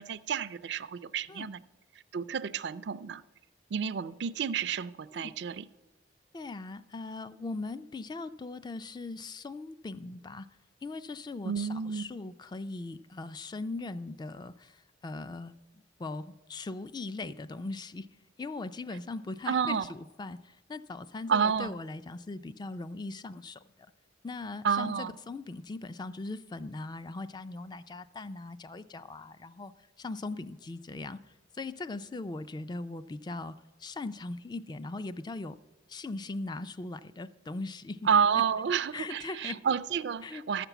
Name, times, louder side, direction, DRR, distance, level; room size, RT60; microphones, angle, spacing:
voice 1, 0.0-1.6 2.1-3.2 3.7-5.7 11.4-12.0 19.5-19.9 21.3-21.7 24.6-25.1 38.1-40.7, right 7 dB, 65° right, 0.4 m, -30 dB
voice 2, 6.3-10.5 10.8-18.1 18.4-23.9 24.2-35.6 35.9-38.1 38.4-38.5 38.9-39.6 40.2-40.4, left 3 dB, 25° left, 0.3 m, -40 dB
13.0 x 5.9 x 8.0 m
head